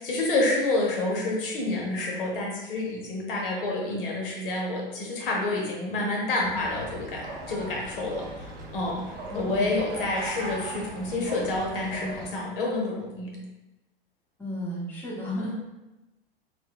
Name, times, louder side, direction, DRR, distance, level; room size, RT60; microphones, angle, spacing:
voice 1, 0.0-9.0 9.3-13.4, left 2 dB, 65° left, -1 dB, 0.8 m, -28 dB
sound 1, 6.4-12.3, right 2 dB, 30° right, 0.6 m, -39 dB
voice 2, 9.3-9.7 14.4-15.5, left 1 dB, 5° left, -7 dB, 0.8 m, -33 dB
2.2 x 2.1 x 3.6 m, 0.99 s
figure-of-eight pair, 95°, 30 cm